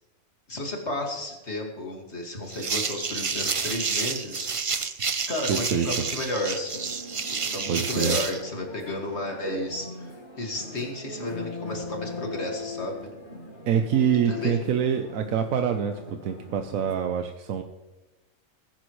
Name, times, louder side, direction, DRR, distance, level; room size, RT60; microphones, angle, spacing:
voice 1, 0.5-4.5 5.3-6.9 7.3-13.0 14.3-14.6, left 1 dB, 55° left, 1 dB, 2.4 m, -33 dB
sound 1, 2.5-8.4, right 5 dB, 40° right, 0.5 m, -29 dB
voice 2, 5.5-5.9 7.7-8.2 13.7-17.6, right 8 dB, 90° right, 6 dB, 1.2 m, -25 dB
sound 2, 6.7-16.9, left 4 dB, 40° left, 2.0 m, -39 dB
20.0 x 10.5 x 3.2 m, 1.1 s
omnidirectional pair, 1.4 m